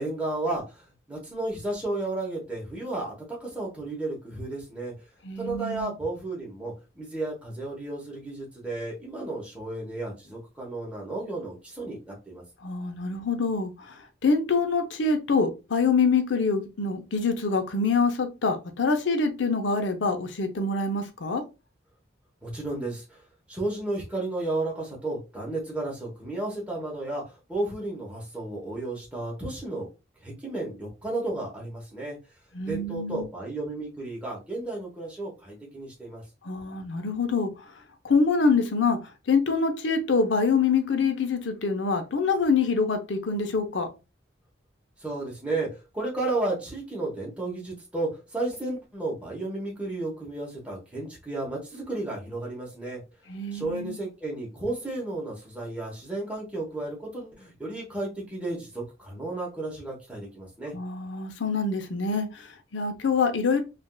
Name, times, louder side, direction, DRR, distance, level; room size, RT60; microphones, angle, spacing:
voice 1, 0.0-4.9 5.4-12.4 22.4-23.2 23.5-27.2 27.5-29.9 30.2-32.2 32.7-36.2 45.0-53.0 53.5-60.7, right 2 dB, 5° right, 0.9 m, -33 dB
voice 2, 5.2-5.9 12.6-14.0 14.2-21.4 32.5-33.3 36.4-37.6 38.0-39.0 39.3-43.9 53.3-54.0 60.7-63.6, left 4 dB, 75° left, 0.6 m, -25 dB
3.4 x 2.4 x 2.2 m
head